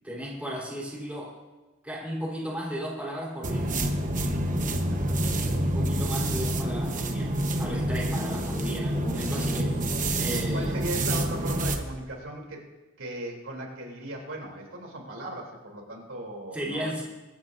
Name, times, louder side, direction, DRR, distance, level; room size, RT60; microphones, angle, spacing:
voice 1, 0.0-1.4 1.8-3.7 5.6-10.7 16.5-17.0, equal, 10° right, -5 dB, 3.8 m, -35 dB
sound 1, 3.4-11.8, right 1 dB, 40° right, 1.2 m, -27 dB
voice 2, 4.7-5.2 10.5-12.6 13.0-16.9, right 1 dB, 90° right, -1 dB, 3.4 m, -38 dB
23.5 x 10.5 x 2.7 m, 1.2 s
head